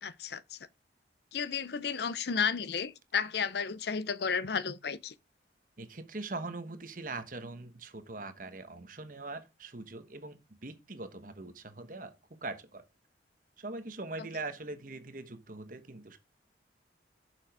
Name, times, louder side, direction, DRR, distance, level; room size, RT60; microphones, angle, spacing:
voice 1, 0.0-0.6 1.3-5.1, left 6 dB, 60° left, 0.5 m, -33 dB
voice 2, 5.8-12.1 12.4-12.8 13.6-16.2, right 2 dB, 45° right, 1.2 m, -42 dB
7.4 x 6.2 x 4.8 m
head